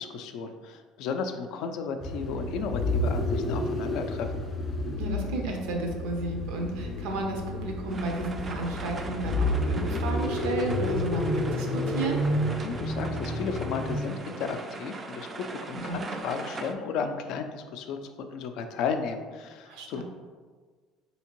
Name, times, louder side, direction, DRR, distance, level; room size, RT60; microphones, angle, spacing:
voice 1, 0.0-4.5 12.6-20.0, left 5 dB, 65° left, 6 dB, 0.3 m, -34 dB
sound 1, 2.0-14.2, left 1 dB, 20° left, 0.6 m, -30 dB
voice 2, 5.0-12.2 15.8-16.0 19.7-20.0, right 2 dB, 80° right, 2 dB, 0.6 m, -32 dB
sound 2, 7.9-16.7, right 3 dB, 25° right, 0.3 m, -40 dB
3.5 x 2.8 x 2.9 m, 1.5 s
cardioid pair, 115°, 0 cm